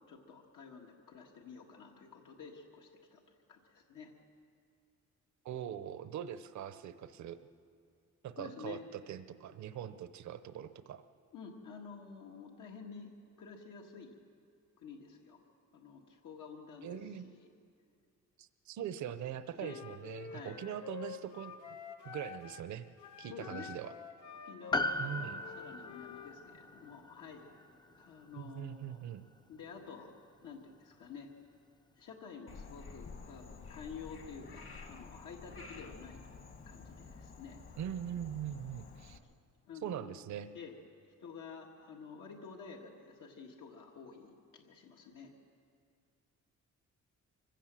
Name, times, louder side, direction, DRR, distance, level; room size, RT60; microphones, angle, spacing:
voice 1, 0.1-3.2 3.5-4.1 8.4-8.8 11.3-13.1 13.4-14.2 14.8-15.4 15.7-17.0 17.2-17.5 19.6-19.8 20.3-20.6 23.3-23.7 24.5-27.5 27.9-29.0 29.5-30.1 30.4-31.3 32.0-36.2 36.7-37.6 38.4-38.5 39.7-40.2 40.5-40.7 41.0-45.3, left 5 dB, 80° left, 0 dB, 1.7 m, -50 dB
voice 2, 5.4-7.4 8.2-11.0 16.8-17.3 18.4-21.8 22.0-22.9 23.2-23.9 25.0-25.4 28.3-29.3 37.8-39.2 39.8-40.5, right 10 dB, 65° right, 11 dB, 0.7 m, -42 dB
Wind instrument woodwind instrument, 19.6-22.7 23.0-26.4, left 7 dB, 65° left, 1.4 m, -48 dB
Piano, 24.7-29.3 29.6-29.7, left 2 dB, 15° left, 0.5 m, -39 dB
Frog, 32.5-39.2, left 4 dB, 45° left, 1.5 m, -51 dB
24.5 x 16.0 x 7.5 m, 2.3 s
cardioid pair, 175°, 31 cm